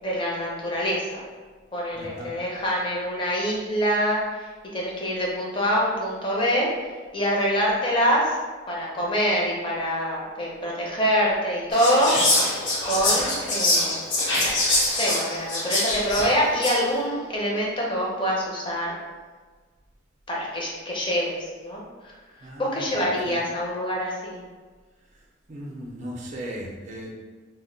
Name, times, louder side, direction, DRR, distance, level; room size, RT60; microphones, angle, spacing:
voice 1, 0.0-1.2 1.7-4.2 4.7-6.7 7.1-8.3 8.7-12.1 12.8-14.0 14.8-19.0 20.3-21.8 22.6-24.4, equal, 25° left, -3 dB, 0.5 m, -25 dB
voice 2, 1.9-2.3 22.4-23.4 25.5-27.1, equal, 35° right, -2 dB, 0.4 m, -37 dB
Whispering, 11.7-16.9, left 1 dB, 70° left, 0.9 m, -24 dB
2.1 x 2.1 x 3.8 m, 1.4 s
head